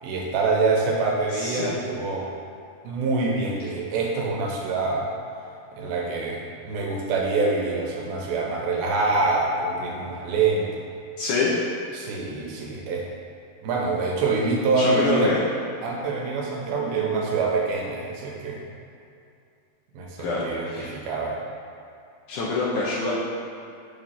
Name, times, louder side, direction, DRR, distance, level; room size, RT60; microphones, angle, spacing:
voice 1, 0.0-2.3 2.8-5.1 5.7-10.7 11.9-13.1 13.6-15.3 15.8-18.6 19.9-21.4, right 3 dB, 85° right, -1 dB, 2.7 m, -25 dB
voice 2, 1.3-1.8 11.2-11.5 14.8-15.4 17.1-17.3 20.2-20.9 22.3-23.1, left 3 dB, 75° left, -7 dB, 1.9 m, -26 dB
7.1 x 3.1 x 5.6 m, 2.5 s
omnidirectional pair, 4.2 m